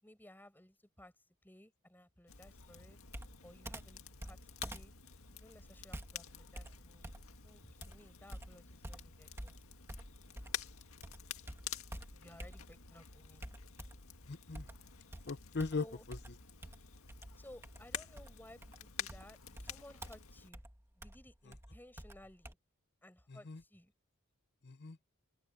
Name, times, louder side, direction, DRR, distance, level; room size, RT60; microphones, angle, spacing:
voice 1, 0.0-1.1 1.4-3.0 3.4-4.4 4.7-4.9 5.3-7.1 7.4-9.6 12.1-13.4 15.8-16.0 17.4-20.6 21.0-22.6 23.0-23.9, left 1 dB, 10° left, 5.6 m, -58 dB
Crackle, 2.3-20.5, left 8 dB, 70° left, 2.0 m, -50 dB
Computer keyboard, 3.1-10.7 11.0-12.9 13.4-14.2 14.5-22.5, right 1 dB, 10° right, 1.7 m, -50 dB
voice 2, 14.3-14.7 15.3-16.2 23.3-23.6 24.6-25.0, left 4 dB, 50° left, 0.8 m, -39 dB
open air
head